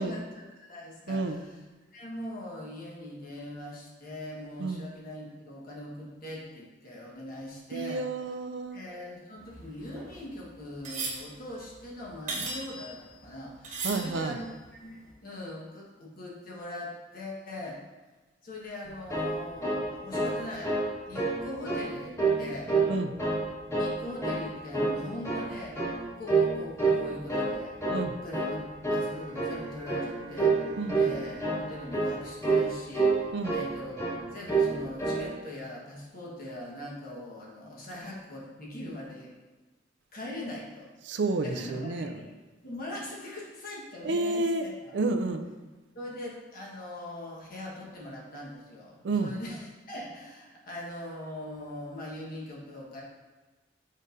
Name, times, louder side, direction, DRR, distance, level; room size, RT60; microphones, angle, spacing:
voice 1, 0.0-1.6 1.9-8.0 8.7-14.4 14.8-17.8 18.4-20.7 21.1-22.7 23.8-25.7 26.2-27.8 28.1-28.6 28.9-30.7 31.0-39.4 40.1-40.9 41.4-42.4 42.6-45.0 45.9-53.0, left 1 dB, 50° left, -4 dB, 1.4 m, -41 dB
voice 2, 1.1-1.4 4.6-4.8 7.7-8.8 13.8-14.4 22.9-23.2 27.9-28.1 30.8-31.0 33.3-33.5 41.1-42.2 44.0-44.7 44.9-45.4 49.0-49.3, right 3 dB, 65° right, 7 dB, 0.4 m, -30 dB
sound 1, 9.4-13.3 13.6-14.6 15.0-15.1, right 3 dB, 40° right, 1.2 m, -38 dB
sound 2, 18.8-20.4 20.6-20.9 21.1-21.8 22.2-22.9 23.2-23.9 24.2-24.4 24.7-25.5 25.7-26.0 26.3-26.5 26.8-27.5 27.8-28.0 28.3-28.6 28.8-29.1 29.3-29.6 29.9-30.1 30.4-30.6 30.9-31.1 31.4-31.6 31.9-32.1 32.4-32.7 32.9-33.7 34.0-34.2 34.5-34.7 35.0-35.2, right 3 dB, 15° left, 1.5 m, -27 dB
Bowed string instrument, 28.8-33.6, right 1 dB, 85° right, 0.9 m, -49 dB
7.2 x 5.1 x 2.7 m, 1.2 s
head